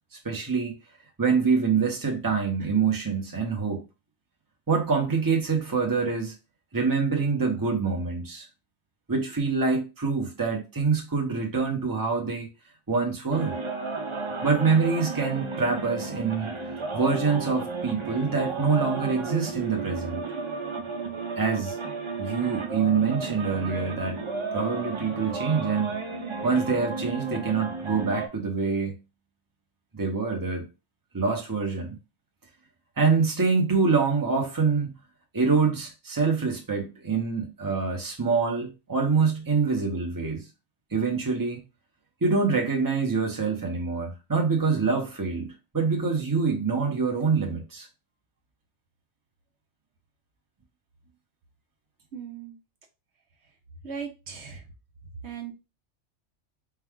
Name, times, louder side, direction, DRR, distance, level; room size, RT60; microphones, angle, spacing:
voice 1, 0.2-0.7 1.2-3.8 4.7-6.3 6.7-8.5 9.1-12.5 12.9-13.5 14.4-16.5 16.9-20.2 21.4-21.8 22.2-24.2 24.5-26.0 26.4-29.0 29.9-30.7 31.1-32.0 33.0-34.9 35.3-40.4 40.9-41.6 42.2-47.9, right 5 dB, 20° right, 0.9 m, -25 dB
sound 1, 13.3-28.3, right 3 dB, 35° right, 0.5 m, -33 dB
voice 2, 52.1-52.6 53.8-54.6 55.2-55.5, right 7 dB, 70° right, 0.9 m, -37 dB
4.5 x 2.3 x 3.6 m
omnidirectional pair, 1.2 m